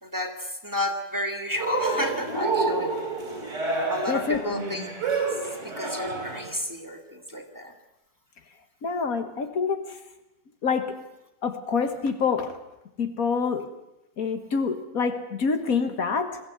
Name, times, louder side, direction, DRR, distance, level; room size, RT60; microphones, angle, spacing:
voice 1, 0.0-2.9 3.9-4.8 5.6-7.7, left 1 dB, 10° right, 4 dB, 1.9 m, -32 dB
Cheering, 1.6-6.5, right 3 dB, 50° right, 3.9 m, -28 dB
voice 2, 4.1-4.4 8.8-9.8 10.6-11.0 11.4-12.6 13.0-13.7 14.2-16.4, left 5 dB, 65° left, 8 dB, 1.7 m, -26 dB
22.0 x 15.0 x 8.0 m, 0.93 s
omnidirectional pair, 1.6 m